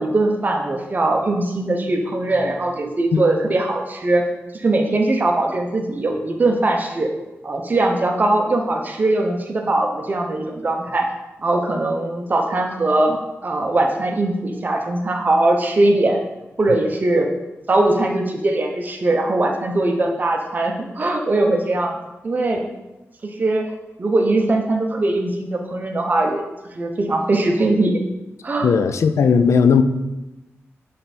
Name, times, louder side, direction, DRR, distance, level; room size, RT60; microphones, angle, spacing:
voice 1, 0.0-4.3 4.5-7.1 7.4-11.1 11.4-16.2 16.6-17.3 17.7-22.0 22.2-22.6 23.2-23.7 24.0-26.4 26.7-28.0 28.4-28.7, right 2 dB, 35° right, 2 dB, 0.9 m, -20 dB
voice 2, 28.6-29.8, left 6 dB, 85° left, 10 dB, 0.5 m, -16 dB
10.0 x 3.4 x 4.2 m, 1.0 s
wide cardioid pair, 145°, 5 cm